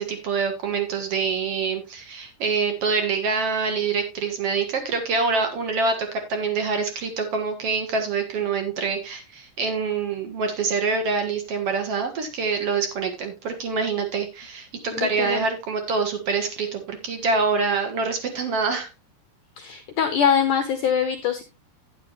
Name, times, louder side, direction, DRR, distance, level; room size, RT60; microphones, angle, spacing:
voice 1, 0.0-18.9, right 4 dB, 50° right, 6 dB, 1.8 m, -25 dB
voice 2, 14.9-15.5 19.6-21.4, left 8 dB, 80° left, 8 dB, 1.8 m, -23 dB
10.5 x 10.0 x 3.0 m, 0.24 s
omnidirectional pair, 4.8 m